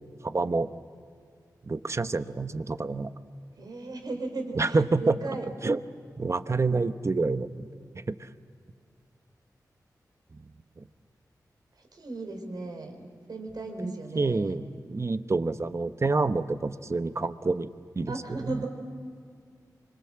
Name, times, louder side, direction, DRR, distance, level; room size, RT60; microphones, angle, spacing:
voice 1, 0.2-0.7 1.6-3.1 4.6-5.2 5.6-5.8 6.2-7.7 7.9-8.3 10.8-10.9 13.8-17.7 17.9-18.6, right 3 dB, 40° right, 11 dB, 1.1 m, -28 dB
voice 2, 3.6-5.5 11.8-14.6 18.1-18.7, right 2 dB, 70° right, 4 dB, 4.4 m, -37 dB
26.0 x 25.0 x 7.7 m, 2.2 s
cardioid pair, 60°, 7 cm